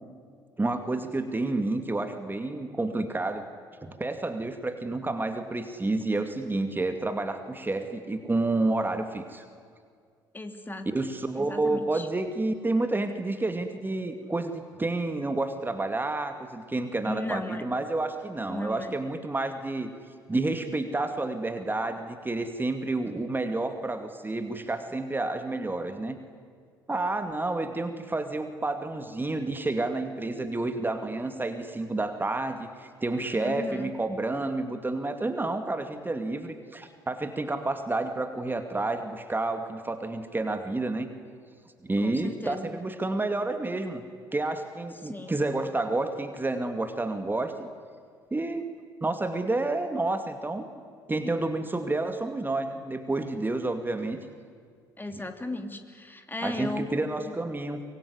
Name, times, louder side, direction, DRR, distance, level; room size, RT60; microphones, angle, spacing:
voice 1, 0.6-3.5 3.8-9.5 10.9-19.9 20.3-26.2 26.9-41.1 41.8-44.0 44.3-47.7 48.3-48.6 49.0-50.8 51.1-54.2 56.4-57.8, right 2 dB, 15° right, 7 dB, 2.4 m, -30 dB
voice 2, 10.3-10.9 11.4-12.1 17.0-17.7 18.5-19.0 33.3-33.9 42.0-42.7 45.0-45.4 55.0-57.3, left 2 dB, 15° left, 6 dB, 3.0 m, -36 dB
25.0 x 23.5 x 9.9 m, 2.1 s
figure-of-eight pair, 50°, 12 cm